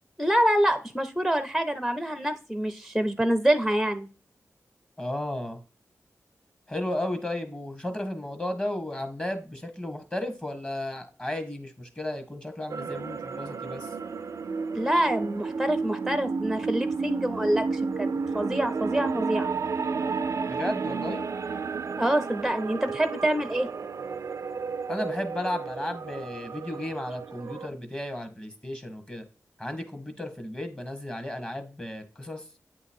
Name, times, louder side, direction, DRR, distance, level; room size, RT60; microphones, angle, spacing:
voice 1, 0.2-4.1 14.7-19.5 22.0-23.7, right 1 dB, ahead, 9 dB, 0.6 m, -26 dB
voice 2, 5.0-5.6 6.7-13.9 20.4-21.2 24.9-29.2 29.6-32.4, left 1 dB, 20° left, 8 dB, 1.2 m, -34 dB
sound 1, 12.7-27.7, right 4 dB, 60° right, 0.4 m, -32 dB
8.3 x 2.9 x 4.3 m, 0.35 s
wide cardioid pair, 75°, 6 cm